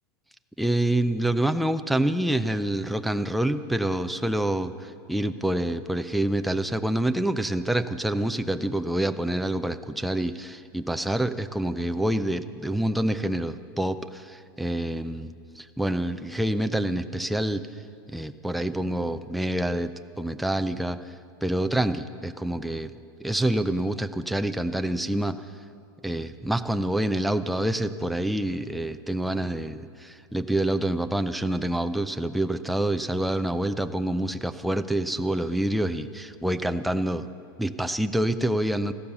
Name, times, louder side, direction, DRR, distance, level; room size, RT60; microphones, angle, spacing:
voice 1, 0.6-17.7 18.1-21.0 21.4-22.9 23.2-25.4 26.0-37.3 37.6-38.9, right 1 dB, ahead, 9 dB, 0.4 m, -27 dB
14.5 x 12.0 x 6.9 m, 2.3 s
supercardioid pair, 135°, 12 cm